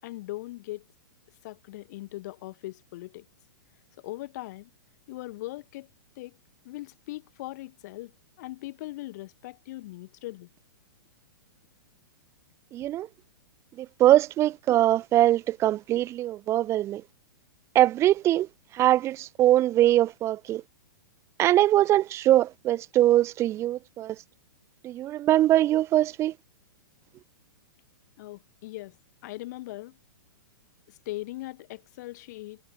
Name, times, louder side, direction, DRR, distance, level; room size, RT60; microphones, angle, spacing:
voice 1, 0.0-0.8 1.4-3.3 4.0-4.7 5.1-5.9 6.2-6.4 6.6-10.5 28.2-29.0 29.2-30.0 30.9-32.6, left 18 dB, 50° left, 7.8 m, -40 dB
voice 2, 12.7-13.1 13.8-17.0 17.7-18.5 18.7-20.6 21.4-24.2 24.8-26.3, right 13 dB, 25° right, 0.4 m, -22 dB
hypercardioid pair, 115°, 12 cm